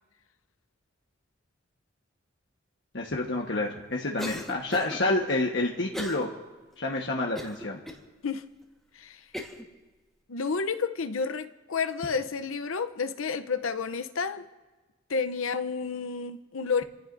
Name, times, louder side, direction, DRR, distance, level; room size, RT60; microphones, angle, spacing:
voice 1, 2.9-6.3 6.8-7.8, left 2 dB, 60° left, 1.3 m, -28 dB
Cough, 4.2-5.0 5.9-6.3 6.7-6.8 7.4-8.0 8.6-8.7 9.3-9.7, equal, ahead, 1.4 m, -38 dB
voice 2, 8.9-9.2 10.3-14.5 15.1-16.8, left 5 dB, 90° left, 0.7 m, -30 dB
28.0 x 15.5 x 2.6 m
head